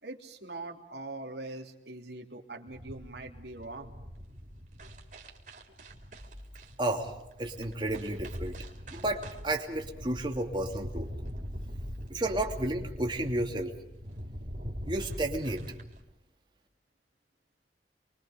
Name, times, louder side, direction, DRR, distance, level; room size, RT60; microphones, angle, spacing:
voice 1, 0.0-3.9, right 2 dB, 70° right, 2 dB, 3.2 m, -42 dB
sound 1, 2.7-16.0, equal, 45° right, 4.0 m, -42 dB
voice 2, 6.8-7.1 7.4-8.5 8.9-11.1 12.1-13.7 14.9-15.6, right 1 dB, 25° right, 2 dB, 2.8 m, -32 dB
29.5 x 23.5 x 5.2 m, 0.87 s
head